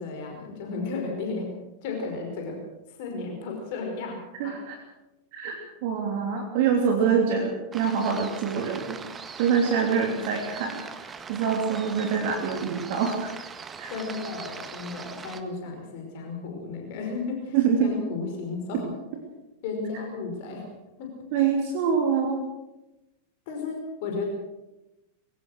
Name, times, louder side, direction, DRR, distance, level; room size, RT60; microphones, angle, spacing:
voice 1, 0.0-1.5 1.8-2.6 2.9-4.6 7.0-7.2 9.9-10.0 13.9-18.9 19.6-20.7 21.0-21.1 23.5-24.2, left 4 dB, 50° left, 3 dB, 5.2 m, -34 dB
voice 2, 4.4-4.8 5.3-9.0 9.4-13.3 13.8-13.9 17.5-17.9 21.3-22.5, right 6 dB, 50° right, 2 dB, 3.0 m, -25 dB
sound 1, 7.7-15.4, right 5 dB, 20° right, 1.7 m, -41 dB
22.0 x 18.0 x 6.5 m, 0.98 s
figure-of-eight pair, 90°, 0 cm